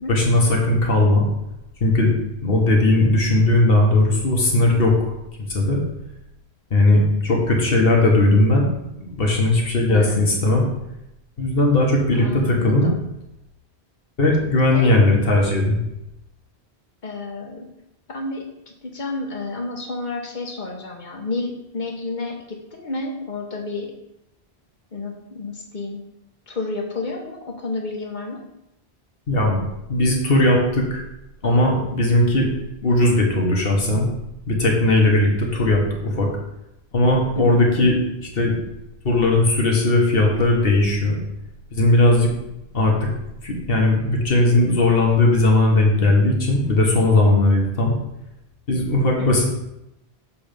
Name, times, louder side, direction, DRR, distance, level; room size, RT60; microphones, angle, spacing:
voice 1, 0.1-1.2 1.8-2.1 2.4-5.0 5.5-5.8 6.7-8.7 9.0-10.7 11.4-12.9 14.2-15.8 29.3-29.6 29.9-31.0 31.4-32.5 32.8-34.1 34.5-36.3 36.9-38.5 39.0-41.2 41.7-42.3 42.7-43.1 43.4-47.9 48.7-49.5, left 2 dB, 65° left, 0 dB, 1.5 m, -18 dB
voice 2, 9.9-10.3 12.2-13.0 14.7-14.9 17.0-17.7 18.1-23.9 24.9-26.0 26.5-28.4 37.3-37.7 49.2-49.4, left 3 dB, 50° left, 1 dB, 1.2 m, -30 dB
7.1 x 3.4 x 5.1 m, 0.87 s
omnidirectional pair, 1.0 m